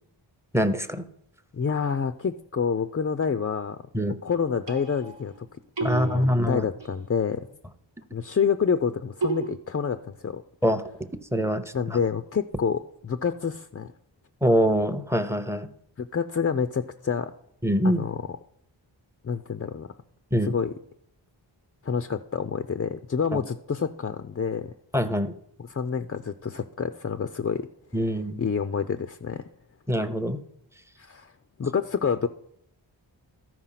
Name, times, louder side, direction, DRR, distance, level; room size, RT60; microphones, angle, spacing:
voice 1, 0.5-1.0 3.9-4.2 5.8-6.7 10.6-10.8 11.3-11.6 11.9-12.0 14.4-15.7 17.6-18.1 20.3-20.5 23.3-23.4 24.9-25.3 27.9-28.4 29.9-30.4, equal, 5° right, 11 dB, 0.7 m, -24 dB
voice 2, 1.5-3.8 4.2-5.5 5.8-7.5 8.1-10.4 11.7-13.9 16.0-17.3 17.8-18.2 19.2-19.9 20.4-20.7 21.8-24.7 25.7-27.7 27.9-28.1 28.4-29.4 31.0-31.3 31.6-32.3, left 6 dB, 30° left, 10 dB, 0.4 m, -28 dB
sound 1, 4.3-5.4 5.8-7.0 9.2-9.5, right 4 dB, 65° right, 1.1 m, -33 dB
13.5 x 4.7 x 5.7 m, 0.75 s
wide cardioid pair, 65°, 47 cm